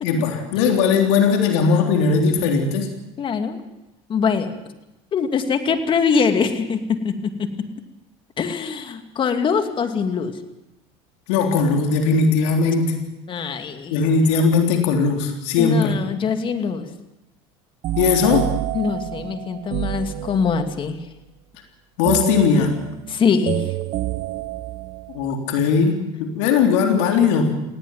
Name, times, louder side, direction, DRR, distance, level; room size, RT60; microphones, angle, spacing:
voice 1, 0.0-2.9 11.3-12.9 13.9-16.0 18.0-18.5 22.0-22.7 25.1-27.5, left 5 dB, 80° left, 3 dB, 3.6 m, -19 dB
voice 2, 3.2-3.6 4.1-4.5 5.1-7.5 8.4-10.3 13.3-13.9 15.6-16.9 18.7-21.0 23.1-23.6, left 5 dB, 35° left, 7 dB, 2.5 m, -23 dB
sound 1, 17.8-20.8 22.0-25.3, right 15 dB, 55° right, 0.8 m, -28 dB
19.0 x 17.5 x 9.3 m, 0.94 s
supercardioid pair, 110°, 14 cm